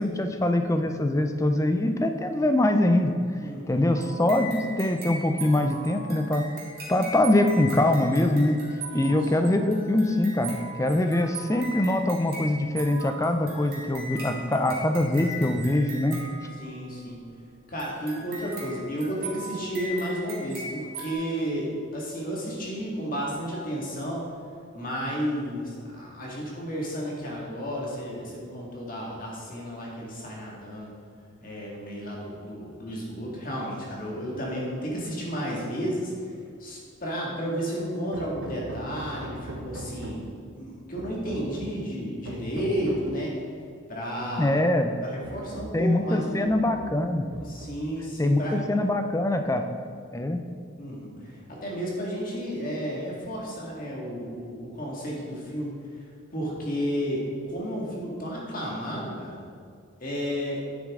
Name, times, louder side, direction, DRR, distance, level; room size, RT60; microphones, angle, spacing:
voice 1, 0.0-3.1 3.7-6.4 6.9-8.6 8.9-16.2 44.4-44.9 45.7-47.3 48.2-49.6 50.1-50.4, left 1 dB, 15° left, 6 dB, 0.4 m, -23 dB
voice 2, 3.4-4.0 8.9-9.3 14.2-14.6 16.6-17.2 17.7-21.7 21.9-24.2 24.7-30.9 31.4-36.3 36.6-40.2 40.6-43.3 43.9-44.6 45.0-46.5 47.4-48.6 50.8-55.8 56.3-57.2 57.5-59.4 60.0-60.6, equal, 40° left, -4 dB, 1.9 m, -32 dB
sound 1, 3.9-17.0 17.8-21.1, right 2 dB, 45° right, 2.1 m, -39 dB
Hammer, 38.1-40.4 41.0-41.8 42.2-43.2 44.2-44.3 44.7-44.8 45.2-45.9 46.4-47.0 47.3-48.0, right 1 dB, 65° right, 1.1 m, -40 dB
9.6 x 7.3 x 3.7 m, 2.2 s
head